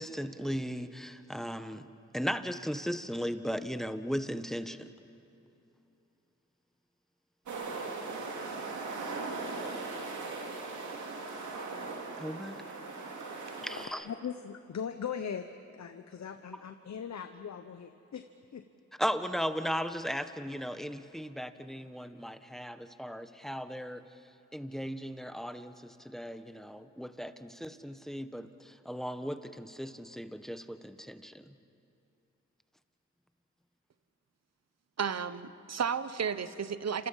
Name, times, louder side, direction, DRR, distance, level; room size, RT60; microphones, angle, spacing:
voice 1, 0.0-1.9 2.1-4.9 12.2-12.6 13.6-14.0 19.0-24.0 24.5-31.5, equal, ahead, 10 dB, 1.5 m, -37 dB
sound 1, 7.5-13.9, right 3 dB, 90° right, 2.8 m, -39 dB
voice 2, 13.7-15.5 15.7-18.3 18.5-18.6, left 7 dB, 70° left, 8 dB, 1.0 m, -40 dB
voice 3, 35.0-37.1, right 6 dB, 60° right, 13 dB, 1.1 m, -33 dB
29.0 x 27.0 x 5.7 m, 2.8 s
supercardioid pair, 40°, 29 cm